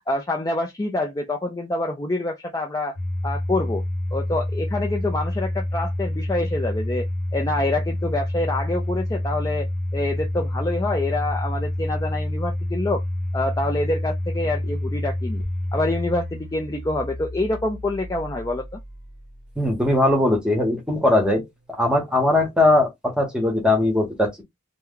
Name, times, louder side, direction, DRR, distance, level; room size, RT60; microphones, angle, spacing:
voice 1, 0.1-3.0 3.2-3.8 4.1-13.0 13.3-15.4 15.7-18.8, left 2 dB, 15° left, 0.4 m, -26 dB
Domestic sounds home sounds, 3.0-19.9, left 1 dB, 40° left, 1.0 m, -28 dB
voice 2, 19.6-21.4 21.8-24.4, left 2 dB, 5° right, 1.0 m, -20 dB
3.0 x 2.1 x 3.6 m
head